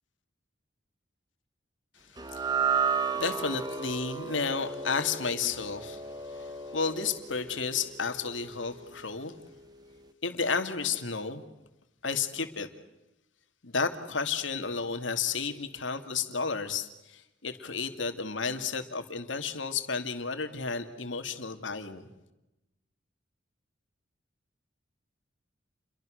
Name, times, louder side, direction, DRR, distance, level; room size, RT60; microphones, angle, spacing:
sound 1, 2.2-8.6, right 5 dB, 20° right, 1.8 m, -33 dB
voice 1, 2.3-9.3 10.2-11.4 12.0-12.7 13.6-22.0, left 5 dB, 75° left, 7 dB, 2.5 m, -32 dB
30.0 x 23.5 x 6.5 m, 0.94 s
head